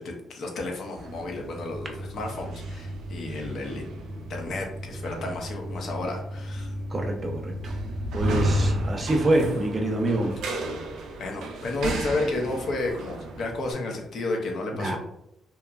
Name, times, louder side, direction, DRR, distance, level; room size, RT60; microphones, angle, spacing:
voice 1, 0.0-3.8 4.3-6.7 11.2-15.0, left 2 dB, 65° left, 2 dB, 0.6 m, -32 dB
sound 1, 1.0-13.7, right 1 dB, 80° right, 0.4 m, -32 dB
voice 2, 6.9-7.7 8.1-10.3 14.7-15.0, right 1 dB, 30° right, 3 dB, 0.5 m, -26 dB
2.9 x 2.3 x 2.3 m, 0.81 s
cardioid pair, 90°, 0 cm